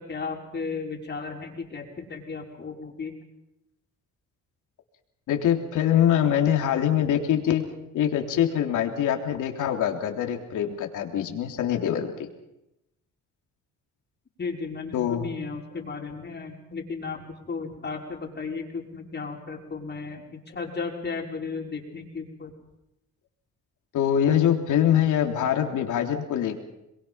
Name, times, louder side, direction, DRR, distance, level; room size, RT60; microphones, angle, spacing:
voice 1, 0.0-3.1 14.4-22.5, left 4 dB, 35° left, 0 dB, 5.9 m, -35 dB
voice 2, 5.3-7.6 7.9-12.3 14.9-15.3 23.9-26.6, left 10 dB, 80° left, 3 dB, 3.5 m, -24 dB
28.0 x 22.5 x 5.9 m, 0.87 s
cardioid pair, 90°, 30 cm